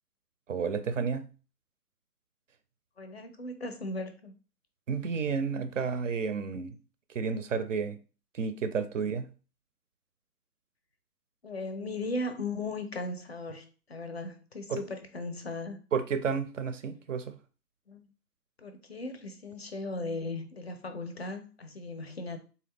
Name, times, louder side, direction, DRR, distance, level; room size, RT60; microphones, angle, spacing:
voice 1, 0.5-1.3 4.9-6.8 7.1-8.0 8.3-9.3 14.7-14.8 15.9-17.3, right 5 dB, 55° right, 0.5 m, -31 dB
voice 2, 3.0-4.3 11.4-15.8 17.9-18.1 18.6-22.4, left 2 dB, 45° left, 0.4 m, -37 dB
3.8 x 2.2 x 3.5 m
hypercardioid pair, 150°, 48 cm